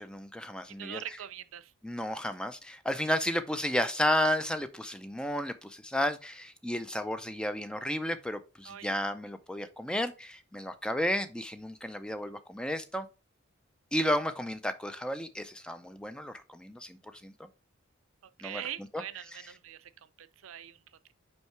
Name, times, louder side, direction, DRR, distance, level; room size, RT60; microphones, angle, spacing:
voice 1, 0.0-1.0 1.8-13.1 13.9-17.5 18.4-18.6 18.9-19.0 19.3-19.4, left 1 dB, 5° left, 0.5 m, -32 dB
voice 2, 0.7-1.7 8.6-8.9 18.4-19.9 20.2-20.8, right 11 dB, 80° right, 0.5 m, -42 dB
5.5 x 4.6 x 4.5 m
head